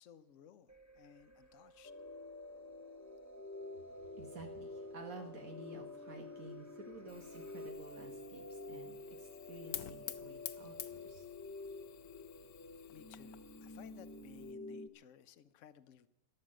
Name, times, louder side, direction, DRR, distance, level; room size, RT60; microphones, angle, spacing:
voice 1, 0.0-1.9 12.9-16.1, left 9 dB, 60° left, 13 dB, 1.1 m, -59 dB
sound 1, 0.7-7.7, right 3 dB, 10° right, 1.4 m, -64 dB
sound 2, 1.8-14.9, left 2 dB, 20° left, 0.4 m, -49 dB
voice 2, 3.9-11.2, right 3 dB, 70° right, 3 dB, 1.8 m, -52 dB
Fire, 7.1-14.5, left 11 dB, 85° left, 1.2 m, -51 dB
13.0 x 12.0 x 7.5 m, 0.87 s
omnidirectional pair, 1.5 m